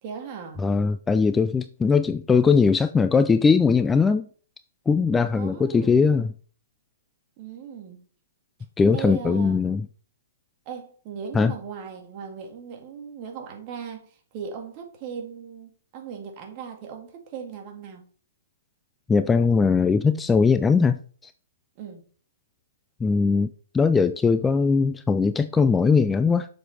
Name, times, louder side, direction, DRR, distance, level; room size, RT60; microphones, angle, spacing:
voice 1, 0.0-0.6 5.3-6.0 7.4-8.0 8.9-9.6 10.7-18.0 21.8-22.0, right 7 dB, 35° right, 1.9 m, -38 dB
voice 2, 0.6-4.3 4.9-6.3 8.8-9.9 11.3-11.5 19.1-21.3 23.0-23.5 23.7-26.5, left 5 dB, 10° left, 0.3 m, -20 dB
7.0 x 5.9 x 3.4 m
hypercardioid pair, 130°, 0 cm